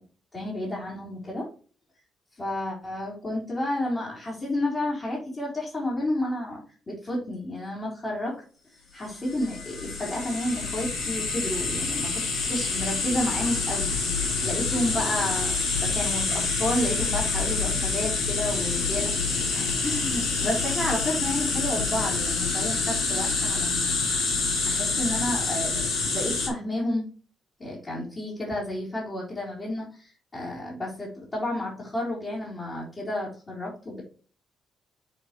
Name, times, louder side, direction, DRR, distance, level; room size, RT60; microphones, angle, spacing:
voice 1, 0.3-1.5 2.3-8.4 8.9-12.2 12.5-13.9 14.2-24.0 24.3-24.4 24.7-25.7 26.0-27.1 27.6-34.0, left 1 dB, 30° left, -6 dB, 3.6 m, -31 dB
sound 1, 9.2-26.5, left 4 dB, 85° left, 2.9 m, -27 dB
8.3 x 4.5 x 3.2 m, 0.39 s
cardioid pair, 90°, 0 cm